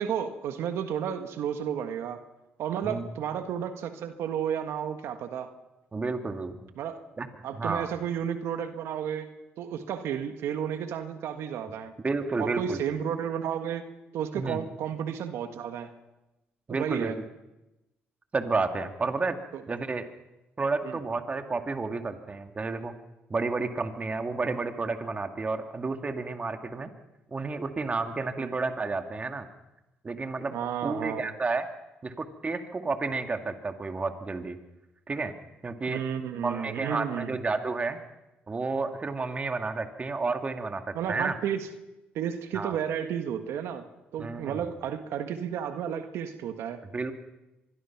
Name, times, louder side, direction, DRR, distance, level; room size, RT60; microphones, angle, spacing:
voice 1, 0.0-2.2 2.6-5.5 6.8-7.0 7.4-9.3 9.6-11.9 12.4-13.8 14.1-15.9 16.7-17.1 19.5-19.6 20.8-20.9 28.4-28.5 30.5-31.3 35.9-37.4 40.9-41.7 42.1-43.9 44.1-46.8, right 8 dB, 80° right, 8 dB, 1.6 m, -32 dB
voice 2, 5.9-6.7 7.2-7.3 7.5-7.9 12.0-12.8 14.3-14.6 16.7-17.1 18.3-19.4 19.7-20.1 20.6-22.9 23.3-26.9 27.3-29.5 30.0-30.5 30.8-31.7 32.0-34.6 35.1-35.3 35.6-36.0 36.4-38.0 38.5-41.3 42.5-42.7 44.2-44.7 46.9-47.1, right 3 dB, 30° right, 6 dB, 2.1 m, -31 dB
25.0 x 21.5 x 6.0 m, 0.97 s
cardioid pair, 85°, 4 cm